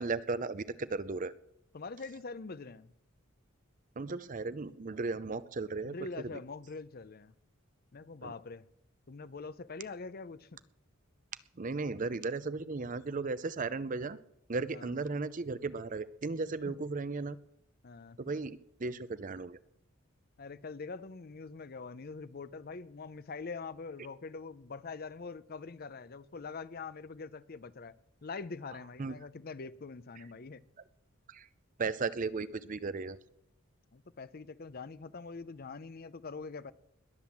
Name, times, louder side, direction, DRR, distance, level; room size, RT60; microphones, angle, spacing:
voice 1, 0.0-1.3 4.0-5.9 6.3-6.4 8.2-8.3 11.6-14.2 14.5-17.4 18.2-19.6 29.0-29.2 31.3-31.5 31.8-33.2, right 3 dB, 40° right, 15 dB, 0.5 m, -35 dB
voice 2, 1.7-2.9 5.8-7.3 7.9-8.6 9.1-10.6 14.7-14.9 16.7-16.8 17.8-18.2 20.4-27.9 28.2-30.6 33.9-36.7, left 4 dB, 45° left, 16 dB, 0.6 m, -44 dB
21.0 x 7.9 x 7.2 m, 0.80 s
head